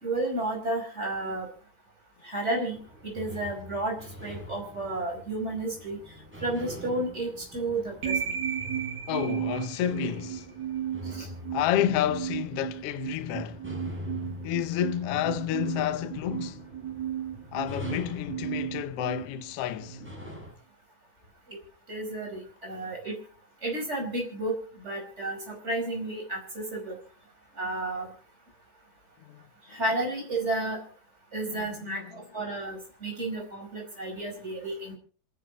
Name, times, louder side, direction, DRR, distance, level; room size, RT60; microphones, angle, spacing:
voice 1, 0.0-1.5 2.2-6.0 6.4-8.3 11.1-11.3 21.5-21.6 21.9-23.2 23.6-27.0 27.6-28.1 29.7-30.8 31.3-34.9, right 2 dB, 20° right, 5.3 m, -32 dB
sound 1, 2.7-20.5, equal, 5° right, 7.0 m, -44 dB
sound 2, 8.0-20.1, right 9 dB, 40° right, 1.9 m, -35 dB
voice 2, 9.1-10.5 11.5-13.6 14.4-16.6 17.5-20.0 29.2-29.4 31.5-32.2, left 11 dB, 70° left, 1.4 m, -30 dB
27.0 x 10.5 x 4.0 m
omnidirectional pair, 3.7 m